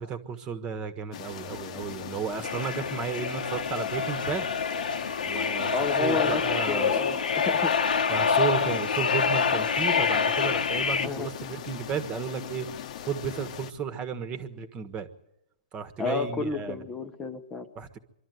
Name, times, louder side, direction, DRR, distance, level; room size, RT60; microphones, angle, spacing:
voice 1, 0.0-4.5 5.2-5.7 6.0-7.0 8.1-12.7 13.1-15.1 15.7-16.8 17.7-18.0, right 7 dB, 20° right, 10 dB, 1.4 m, -33 dB
sound 1, 1.1-13.7, left 10 dB, 55° left, 1.1 m, -40 dB
sound 2, 2.4-11.1, left 6 dB, 90° left, 1.3 m, -26 dB
voice 2, 5.7-6.4 6.7-7.7 11.0-11.3 16.0-17.7, left 3 dB, 15° left, 7 dB, 1.0 m, -31 dB
24.5 x 12.5 x 9.4 m, 0.87 s
hypercardioid pair, 145°, 5 cm